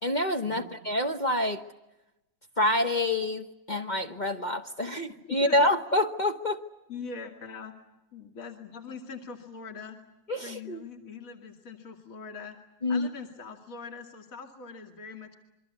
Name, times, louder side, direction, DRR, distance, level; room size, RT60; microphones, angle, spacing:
voice 1, 0.0-1.6 2.6-6.6 10.3-10.8 12.8-13.1, left 1 dB, 30° left, 5 dB, 1.0 m, -27 dB
voice 2, 5.0-5.6 6.9-7.7 8.1-10.0 10.4-12.6 12.9-15.4, left 5 dB, 45° left, 3 dB, 2.7 m, -42 dB
27.5 x 23.5 x 8.4 m, 0.96 s
omnidirectional pair, 2.0 m